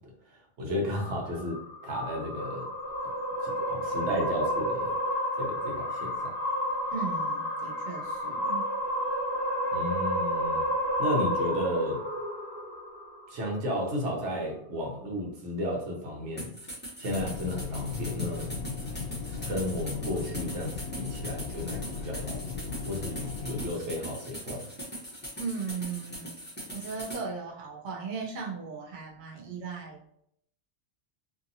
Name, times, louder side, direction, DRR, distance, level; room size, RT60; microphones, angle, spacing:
voice 1, 0.3-2.7 3.4-4.9 5.4-6.3 9.7-10.7 11.0-12.0 13.3-16.5 17.0-18.5 19.5-24.7, left 1 dB, 80° right, -1 dB, 1.1 m, -33 dB
sound 1, 0.9-13.4, equal, 50° left, 0.5 m, -31 dB
voice 2, 6.9-8.7 25.4-26.3 26.7-30.0, right 5 dB, 50° right, -1 dB, 0.6 m, -37 dB
sound 2, 16.4-27.2, right 1 dB, 10° left, 0.7 m, -41 dB
sound 3, 17.1-23.7, left 4 dB, 75° left, 0.9 m, -37 dB
2.6 x 2.6 x 2.6 m, 0.71 s
omnidirectional pair, 1.2 m